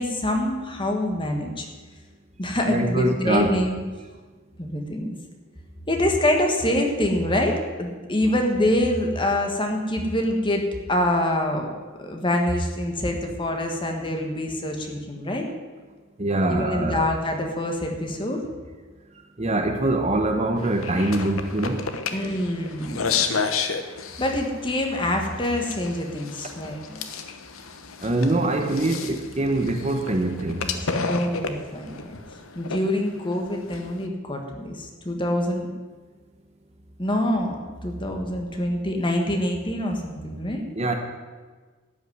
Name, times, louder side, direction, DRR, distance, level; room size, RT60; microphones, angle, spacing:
voice 1, 0.0-1.7 2.4-3.8 4.6-5.1 5.9-10.6 10.9-11.7 12.0-15.4 16.4-18.4 22.1-23.3 24.2-27.0 31.1-32.2 32.5-35.7 37.0-37.6 37.8-40.6, left 1 dB, 25° left, 2 dB, 1.6 m, -25 dB
voice 2, 2.7-3.6 16.2-17.1 19.4-21.8 28.0-30.6 40.8-40.9, right 2 dB, 30° right, 5 dB, 1.0 m, -23 dB
sound 1, 20.6-34.1, left 5 dB, 85° left, 1.0 m, -32 dB
12.5 x 6.0 x 9.5 m, 1.4 s
head